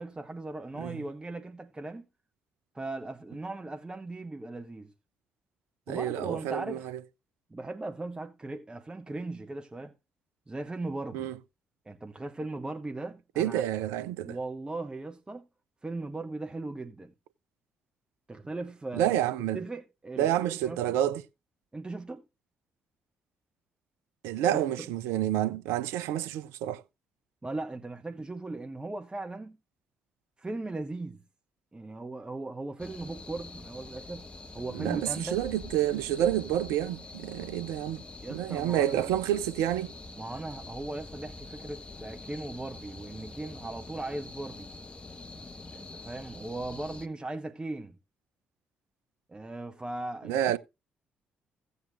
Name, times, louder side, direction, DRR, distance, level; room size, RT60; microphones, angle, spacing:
voice 1, 0.0-2.1 2.7-4.9 5.9-6.9 7.5-9.9 10.5-11.3 11.9-13.6 14.2-15.5 15.8-17.1 18.3-19.2 19.5-21.0 21.7-22.2 24.4-24.9 27.4-29.6 30.4-31.2 31.7-35.4 38.2-39.0 40.1-44.7 45.7-48.0 49.3-50.6, right 2 dB, 20° right, 0.9 m, -38 dB
voice 2, 5.9-6.8 11.1-11.3 13.4-14.4 18.9-19.6 20.2-21.2 24.2-26.8 34.7-38.0 38.3-39.9 50.3-50.6, right 12 dB, 65° right, 0.6 m, -29 dB
sound 1, 32.8-47.1, left 3 dB, 25° left, 1.4 m, -45 dB
16.0 x 8.1 x 2.6 m
figure-of-eight pair, 40°, 5 cm